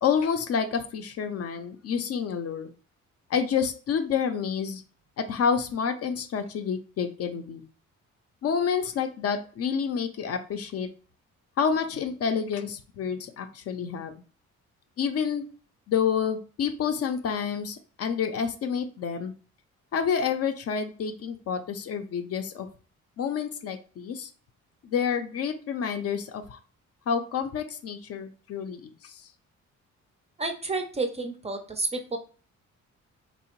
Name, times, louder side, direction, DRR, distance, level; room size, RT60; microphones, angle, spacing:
voice 1, 0.0-2.7 3.3-4.8 5.2-7.6 8.4-10.9 11.6-14.1 15.0-15.4 15.9-19.3 19.9-22.7 23.2-24.3 24.8-26.6 27.1-29.1, left 7 dB, 50° left, 7 dB, 0.5 m, -28 dB
voice 2, 30.4-32.2, right 3 dB, 20° right, 5 dB, 0.4 m, -30 dB
2.8 x 2.0 x 2.9 m, 0.38 s
cardioid pair, 90°, 30 cm